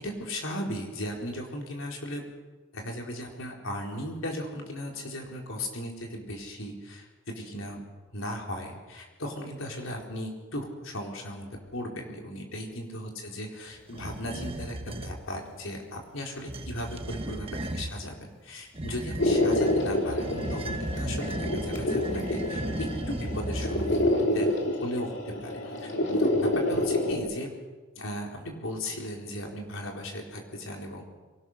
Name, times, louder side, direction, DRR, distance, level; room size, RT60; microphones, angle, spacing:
voice 1, 0.0-2.2 2.7-7.8 8.1-24.5 24.8-27.5 28.0-31.0, left 1 dB, 80° left, 1 dB, 4.3 m, -37 dB
sound 1, 13.9-15.2 16.3-18.0 18.7-24.3, right 1 dB, 25° right, 1.2 m, -35 dB
sound 2, 19.2-27.2, left 1 dB, 60° left, 3.4 m, -28 dB
23.5 x 18.5 x 6.6 m, 1.3 s
head